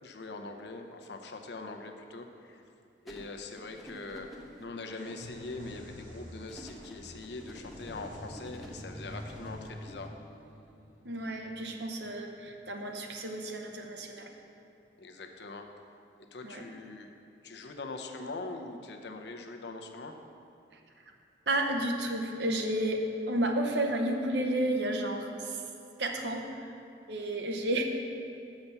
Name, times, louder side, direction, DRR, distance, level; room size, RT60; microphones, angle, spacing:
voice 1, 0.0-2.6 3.0-4.3 4.6-10.1 15.0-15.7 16.3-17.1 17.4-20.2, left 3 dB, 70° left, 4 dB, 0.7 m, -42 dB
sound 1, 3.1-4.6 6.5-10.1, left 1 dB, ahead, 0.8 m, -49 dB
sound 2, 5.0-12.5, equal, 45° right, 1.8 m, -48 dB
voice 2, 11.0-14.3 16.4-16.6 21.5-25.6 26.0-26.5 27.1-27.9, right 1 dB, 75° right, 3 dB, 0.9 m, -31 dB
7.0 x 5.9 x 6.7 m, 2.6 s
head